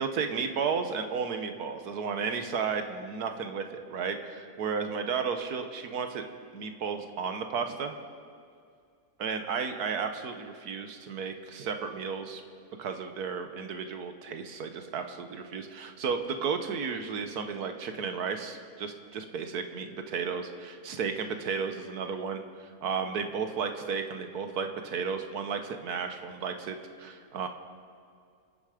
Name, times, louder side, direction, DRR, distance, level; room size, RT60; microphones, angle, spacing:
voice 1, 0.0-6.2 6.5-8.0 9.2-12.4 12.8-27.5, right 5 dB, 90° right, 6 dB, 1.6 m, -33 dB
27.5 x 9.4 x 5.0 m, 2.3 s
omnidirectional pair, 1.6 m